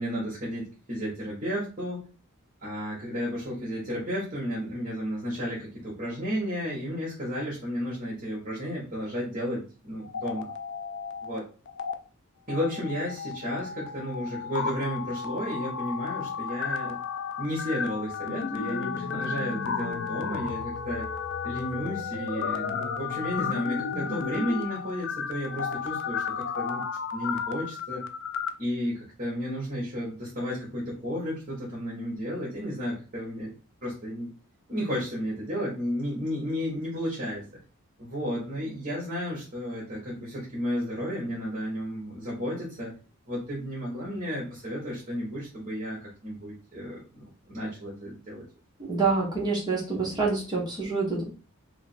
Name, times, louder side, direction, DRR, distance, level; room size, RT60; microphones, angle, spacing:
voice 1, 0.0-2.0 2.6-10.5 11.2-11.4 12.5-17.0 17.4-21.1 21.4-26.8 27.1-28.0 28.6-33.5 33.8-34.3 34.7-37.5 38.0-42.9 43.3-48.4, equal, 35° right, -6 dB, 1.3 m, -33 dB
sound 1, 10.0-11.4 11.7-11.9 12.5-28.5, left 6 dB, 60° left, 0.4 m, -33 dB
voice 2, 48.8-51.2, right 4 dB, 20° right, -4 dB, 1.2 m, -27 dB
2.8 x 2.8 x 4.3 m, 0.36 s
head